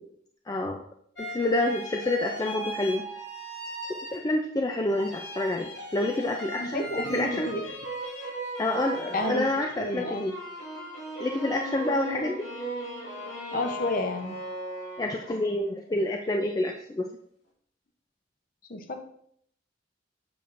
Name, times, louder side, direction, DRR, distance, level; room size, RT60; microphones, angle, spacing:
voice 1, 0.5-0.8 1.2-3.0 3.9-7.5 8.6-10.3 11.2-12.5 15.0-17.1, left 2 dB, 20° left, 2 dB, 0.3 m, -28 dB
sound 1, 1.2-4.6 4.9-15.5, right 1 dB, 85° left, 2.1 m, -38 dB
voice 2, 6.6-7.6 9.1-9.4 9.8-10.2 13.5-14.4 18.7-19.0, left 1 dB, 45° left, 6 dB, 0.7 m, -30 dB
6.9 x 5.8 x 2.5 m, 0.67 s
head